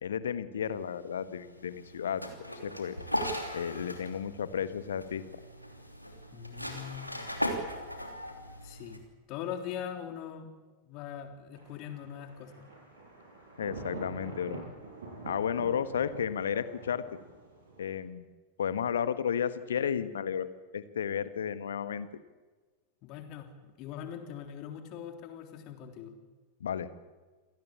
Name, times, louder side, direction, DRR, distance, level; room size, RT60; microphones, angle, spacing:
voice 1, 0.0-2.2 2.6-2.9 3.5-5.2 13.6-14.6 15.2-17.0 17.8-18.3 18.6-20.5 20.7-22.1 26.6-27.0, left 8 dB, 65° left, 13 dB, 1.4 m, -32 dB
sound 1, 0.7-9.0, equal, 90° left, 3.1 m, -38 dB
voice 2, 6.3-7.4 8.6-9.0 9.3-10.5 10.9-12.6 23.0-26.1, left 9 dB, 40° left, 5 dB, 3.4 m, -41 dB
Thunder, 11.5-17.9, right 3 dB, 65° right, 7.5 m, -46 dB
27.0 x 18.0 x 8.6 m, 1.3 s
figure-of-eight pair, 90°, 0 cm